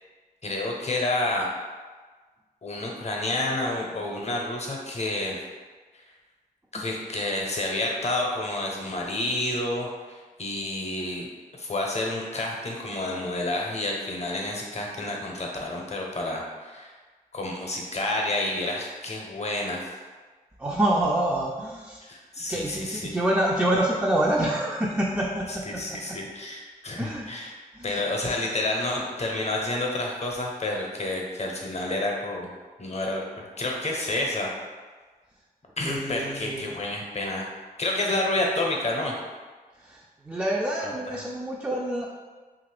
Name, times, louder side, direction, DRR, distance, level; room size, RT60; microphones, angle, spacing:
voice 1, 0.4-1.5 2.6-5.4 6.7-11.3 11.6-16.9 17.3-19.9 22.0-23.1 25.7-27.6 27.8-32.5 32.8-33.2 33.6-34.5 35.8-37.5 37.8-39.1 40.8-40.9, left 2 dB, 45° left, -1 dB, 0.7 m, -29 dB
voice 2, 20.6-22.0 22.4-26.2 27.0-27.3 27.7-28.0 35.8-36.8 39.8-42.1, right 1 dB, 10° right, -3 dB, 0.4 m, -27 dB
2.7 x 2.5 x 3.2 m, 1.4 s
cardioid pair, 55°, 16 cm